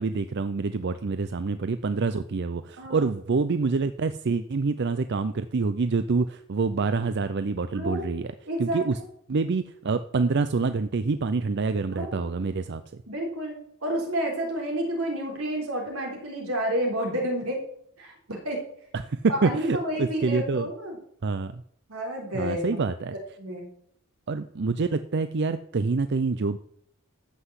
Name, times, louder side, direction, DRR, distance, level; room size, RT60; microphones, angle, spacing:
voice 1, 0.0-8.3 8.6-9.0 9.3-12.8 18.9-20.7 21.2-21.6 22.3-23.1 24.3-26.6, right 4 dB, 55° right, 11 dB, 0.5 m, -26 dB
voice 2, 2.8-3.1 7.7-8.2 8.5-8.8 11.9-12.1 13.1-17.6 18.0-18.6 19.3-21.0 21.9-22.8 23.4-23.7, equal, 90° right, 0 dB, 3.8 m, -30 dB
14.0 x 5.8 x 8.1 m, 0.68 s
head